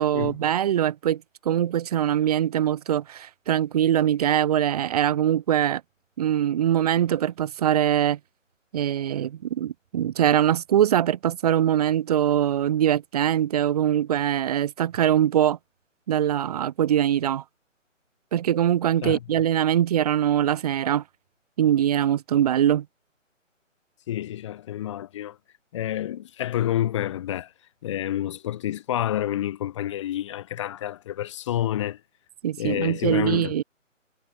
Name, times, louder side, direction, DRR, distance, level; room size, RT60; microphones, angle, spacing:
voice 1, 0.0-5.8 6.2-8.2 8.7-15.6 16.1-17.4 18.3-21.0 21.6-22.9 32.4-33.6, right 10 dB, 30° right, 1.8 m, -22 dB
voice 2, 24.1-25.4 25.7-27.5 27.8-32.0 32.6-33.6, left 12 dB, 25° left, 1.4 m, -28 dB
figure-of-eight pair, 155°, 39 cm